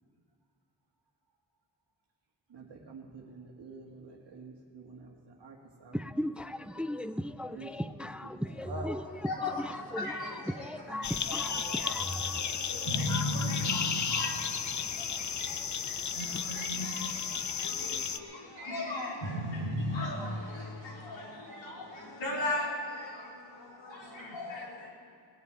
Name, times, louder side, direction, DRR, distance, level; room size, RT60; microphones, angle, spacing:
voice 1, 2.5-6.0 7.5-7.7 8.6-8.9, right 2 dB, 65° right, 1.8 m, -47 dB
voice 2, 5.9-12.4, equal, 5° right, 0.3 m, -37 dB
voice 3, 9.2-9.6 10.0-11.0 11.4-11.8 12.2-24.9, left 1 dB, 75° left, 4.2 m, -37 dB
sound 1, 11.0-18.2, left 7 dB, 40° left, 0.6 m, -34 dB
19.0 x 6.8 x 9.1 m
wide cardioid pair, 125°, 45 cm